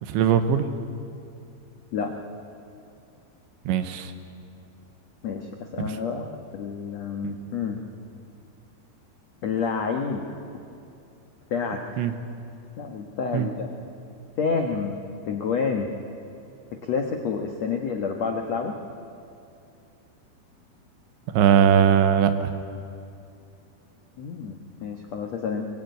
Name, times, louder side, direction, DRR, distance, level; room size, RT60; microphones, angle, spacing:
voice 1, 0.0-0.7 3.7-4.1 5.8-5.9 7.2-7.4 12.0-12.1 13.3-13.5 21.3-22.6, right 8 dB, 85° right, 9 dB, 3.4 m, -20 dB
voice 2, 5.2-7.8 9.4-10.2 11.5-12.1 12.8-13.7 14.4-14.9 15.3-15.9 16.7-18.8 24.2-25.7, left 5 dB, 90° left, 3 dB, 1.5 m, -29 dB
23.0 x 21.5 x 9.4 m, 2.6 s
omnidirectional pair, 5.3 m